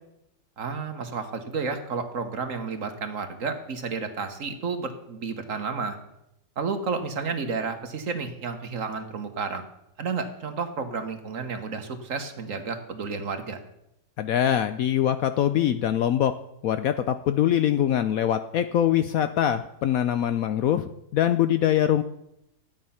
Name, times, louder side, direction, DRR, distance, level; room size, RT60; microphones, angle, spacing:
voice 1, 0.6-6.0 6.6-9.6 10.0-13.6, right 5 dB, 55° right, 7 dB, 1.4 m, -31 dB
voice 2, 14.2-16.3 16.6-22.0, left 10 dB, 70° left, 10 dB, 0.9 m, -23 dB
12.0 x 8.9 x 5.6 m, 0.82 s
omnidirectional pair, 1.8 m